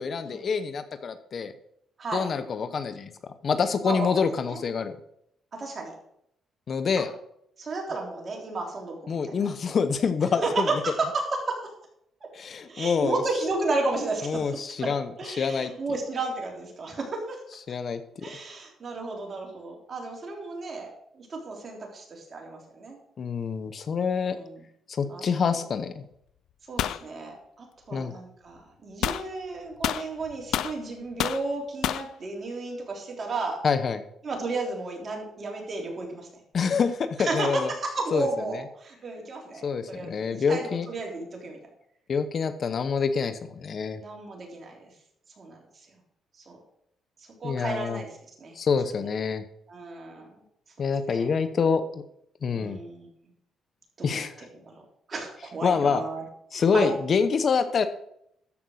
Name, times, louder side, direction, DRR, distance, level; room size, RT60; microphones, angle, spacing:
voice 1, 0.0-1.5 2.1-3.1 3.4-5.0 6.7-7.1 9.1-10.9 12.3-13.2 14.2-15.7 17.7-18.0 23.2-24.4 24.9-26.1 27.9-28.1 33.6-34.0 36.5-37.7 38.1-38.6 39.6-40.9 42.1-44.0 47.4-48.0 48.5-49.4 50.8-52.0 52.4-52.8 54.0-54.5 55.6-56.0 56.5-57.9, left 5 dB, 50° left, 11 dB, 0.9 m, -26 dB
voice 2, 5.6-5.9 7.0-7.1 7.6-8.9 10.4-10.5 10.8-10.9 11.5-11.6 12.7-14.7 15.2-17.4 18.2-23.0 24.1-24.5 25.1-25.2 26.7-33.6 34.2-36.4 37.2-40.1 40.5-41.6 44.0-44.8 45.4-45.6 46.5-46.6 47.4-48.1 48.4-48.5 49.7-50.3 51.1-51.3 52.5-53.1 54.0-54.3 55.1-56.2 56.5-56.9, right 3 dB, 40° right, 0 dB, 3.6 m, -33 dB
sound 1, 26.8-27.0 29.0-29.3 29.8-30.8 31.2-31.4 31.8-32.1, left 11 dB, 80° left, 0.5 m, -28 dB
13.0 x 5.4 x 6.4 m, 0.73 s
cardioid pair, 90°, 0 cm